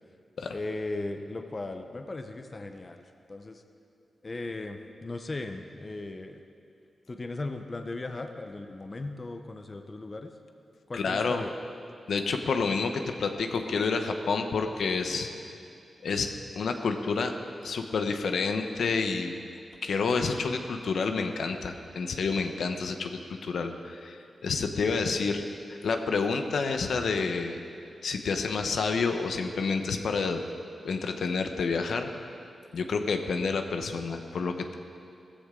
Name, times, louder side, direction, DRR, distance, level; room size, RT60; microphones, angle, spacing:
voice 1, 0.5-3.0 3.3-3.6 4.2-6.4 7.1-10.3 10.9-11.6, left 2 dB, 35° left, 6 dB, 0.8 m, -37 dB
voice 2, 10.9-11.4 12.1-15.3 16.0-16.3 16.5-17.3 17.6-19.3 19.8-25.4 25.7-27.6 28.0-30.4 30.8-32.3 32.7-34.7, left 4 dB, 80° left, 5 dB, 1.0 m, -29 dB
16.5 x 15.0 x 3.8 m, 2.6 s
wide cardioid pair, 95°, 0 cm